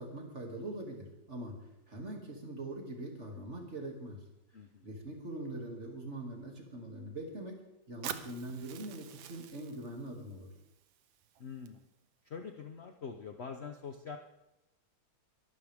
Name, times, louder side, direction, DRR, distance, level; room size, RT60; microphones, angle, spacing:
voice 1, 0.0-1.5 1.9-4.2 4.8-7.5 7.9-10.5, right 1 dB, 35° right, 0 dB, 2.8 m, -42 dB
voice 2, 4.5-4.9 11.4-11.9 12.2-14.2, left 6 dB, 65° left, 5 dB, 0.6 m, -44 dB
Fire, 8.0-12.0, right 10 dB, 75° right, 1.6 m, -47 dB
22.5 x 12.0 x 3.6 m, 0.91 s
omnidirectional pair, 2.3 m